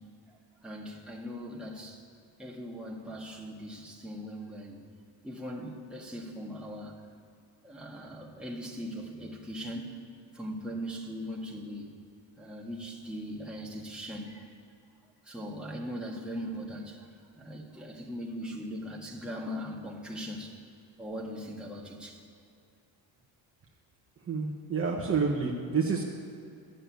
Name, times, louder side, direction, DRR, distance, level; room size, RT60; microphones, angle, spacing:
voice 1, 0.0-2.0 2.4-4.8 5.2-7.0 7.6-10.0 10.3-11.9 12.4-14.5 15.2-17.1 17.3-20.6 21.0-22.2, equal, ahead, -3 dB, 1.7 m, -40 dB
voice 2, 24.3-26.0, right 5 dB, 30° right, -1 dB, 1.1 m, -28 dB
13.5 x 6.7 x 9.3 m, 2.5 s
cardioid pair, 145°, 46 cm